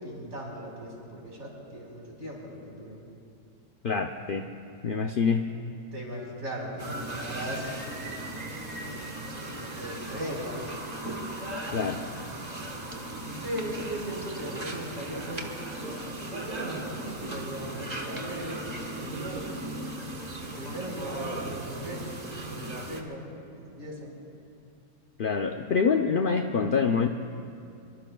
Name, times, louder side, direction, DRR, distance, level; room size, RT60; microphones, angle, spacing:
voice 1, 0.0-3.0 5.9-8.3 9.1-10.7 13.4-19.4 20.6-24.1, right 1 dB, 50° right, -4 dB, 4.7 m, -38 dB
voice 2, 3.8-4.4 4.8-5.5 11.7-12.0 25.2-27.1, left 5 dB, 55° left, 5 dB, 0.6 m, -25 dB
sound 1, 6.8-23.0, right 1 dB, 30° right, 1.3 m, -37 dB
24.5 x 24.0 x 2.3 m, 2.5 s
omnidirectional pair, 1.5 m